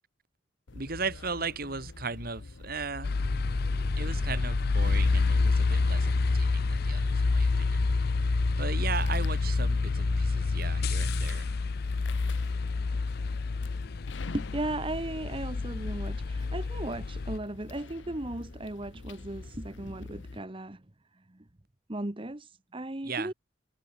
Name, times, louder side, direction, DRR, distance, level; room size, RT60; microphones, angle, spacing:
sound 1, 0.7-20.4, left 3 dB, 70° left, 0.8 m, -44 dB
voice 1, 0.7-3.1 4.0-7.8 8.6-11.5 23.0-23.3, right 4 dB, 50° right, 2.4 m, -37 dB
sound 2, 3.0-17.4, left 4 dB, 55° left, 0.5 m, -28 dB
sound 3, 3.2-11.3, equal, 5° right, 0.8 m, -37 dB
voice 2, 14.3-20.8 21.1-21.4 21.9-23.3, right 1 dB, 25° right, 1.1 m, -36 dB
head